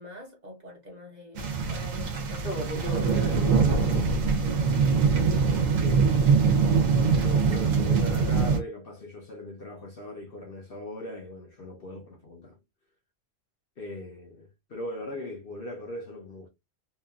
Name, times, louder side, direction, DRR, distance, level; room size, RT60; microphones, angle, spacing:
voice 1, 0.0-2.9, left 2 dB, 40° right, 0.9 m, -46 dB
sound 1, 1.4-8.6, right 5 dB, 90° right, 1.1 m, -23 dB
voice 2, 2.4-4.3 5.8-6.5 7.1-12.6 13.8-16.5, left 1 dB, 55° left, 0.8 m, -39 dB
2.9 x 2.4 x 2.3 m
omnidirectional pair, 1.3 m